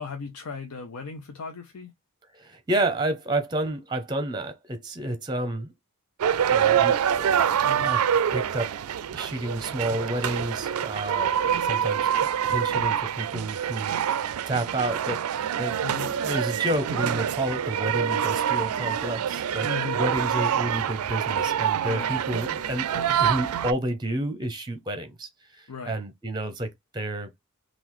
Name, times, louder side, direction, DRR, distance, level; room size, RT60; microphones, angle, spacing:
voice 1, 0.0-1.9 7.6-7.9 15.8-16.1 19.6-20.0 21.8-22.1 25.7-26.0, left 5 dB, 85° left, 0.6 m, -37 dB
voice 2, 2.3-5.7 6.5-7.4 7.7-8.0 8.3-8.7 9.1-12.1 12.5-27.3, right 1 dB, 20° right, 0.6 m, -30 dB
sound 1, 6.2-23.7, right 9 dB, 80° right, 0.4 m, -26 dB
3.9 x 2.4 x 3.0 m
head